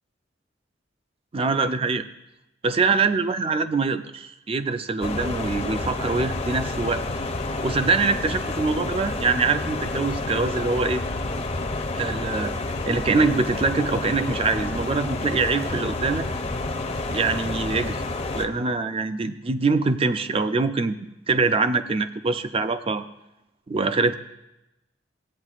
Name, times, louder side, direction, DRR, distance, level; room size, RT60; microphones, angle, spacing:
voice 1, 1.3-2.1 2.6-7.0 7.6-11.0 11.9-12.6 12.9-16.3 17.1-18.0 18.3-21.0 21.3-23.0 23.7-24.2, right 4 dB, 30° right, 11 dB, 0.4 m, -24 dB
sound 1, 5.0-18.5, left 2 dB, 35° left, 0.6 m, -29 dB
15.5 x 8.7 x 2.4 m, 0.91 s
head